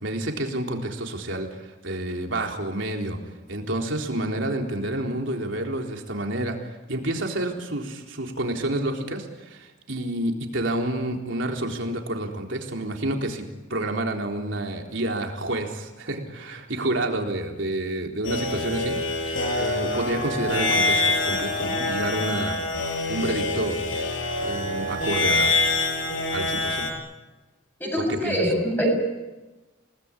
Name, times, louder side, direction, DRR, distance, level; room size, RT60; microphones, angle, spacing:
voice 1, 0.0-3.2 3.5-6.6 6.9-13.4 13.7-19.0 19.3-22.6 23.1-23.8 24.4-25.6 26.3-26.9 28.1-28.3, right 1 dB, 65° right, 2 dB, 3.9 m, -29 dB
sound 1, 18.2-26.9, left 2 dB, 75° left, 6.4 m, -25 dB
voice 2, 27.8-28.9, equal, 10° left, 1 dB, 7.5 m, -24 dB
29.0 x 19.5 x 9.9 m, 1.2 s
head